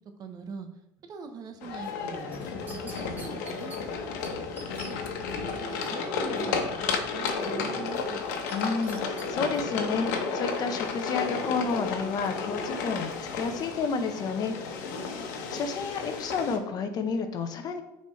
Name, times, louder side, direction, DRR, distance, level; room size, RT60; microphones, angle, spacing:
voice 1, 0.2-0.7 1.1-3.8 4.8-5.0 5.3-8.2 14.9-15.4, right 4 dB, 40° right, 6 dB, 1.0 m, -42 dB
sound 1, 1.6-16.6, left 5 dB, 90° left, 1.1 m, -32 dB
sound 2, 2.3-3.8 4.2-4.3 4.6-4.9 8.5-9.3 9.7-9.8, right 2 dB, 20° right, 1.7 m, -45 dB
voice 2, 8.5-15.1 15.5-17.8, left 5 dB, 45° left, 7 dB, 0.9 m, -31 dB
9.4 x 4.3 x 3.2 m, 0.83 s
supercardioid pair, 120°, 10 cm